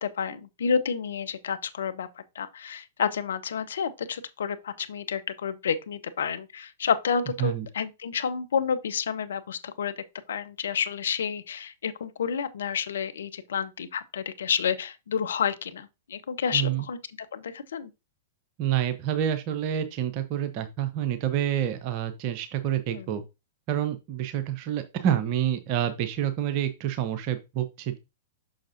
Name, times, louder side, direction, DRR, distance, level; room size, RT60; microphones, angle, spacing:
voice 1, 0.0-2.1 2.3-9.9 10.3-17.0 17.3-17.9 22.9-23.1, left 7 dB, 65° left, 0.6 m, -30 dB
voice 2, 16.5-16.9 18.6-23.2 23.7-28.0, right 10 dB, 40° right, 0.8 m, -28 dB
6.3 x 6.0 x 2.6 m
figure-of-eight pair, 105°, 0 cm